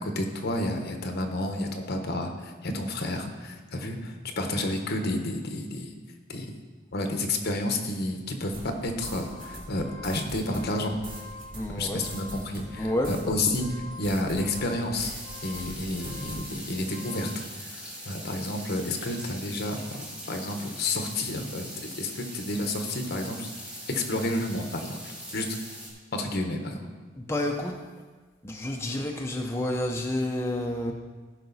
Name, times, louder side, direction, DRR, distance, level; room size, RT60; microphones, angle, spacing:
voice 1, 0.0-5.9 6.3-6.5 6.9-11.0 11.7-13.7 14.0-15.1 15.4-17.3 17.6-23.5 23.9-25.6 26.1-26.8, left 1 dB, 55° left, 5 dB, 1.1 m, -30 dB
sound 1, 8.5-15.3 15.5-16.5, right 1 dB, 45° right, 2.6 m, -43 dB
sound 2, 9.2-17.4, left 2 dB, 65° right, 1.7 m, -47 dB
voice 2, 11.5-12.0 12.8-13.1 27.2-27.8 28.4-30.9, left 1 dB, 15° left, 1 dB, 0.6 m, -29 dB
sound 3, 15.0-25.9, equal, 5° right, 2.3 m, -42 dB
15.0 x 5.8 x 4.1 m, 1.4 s
head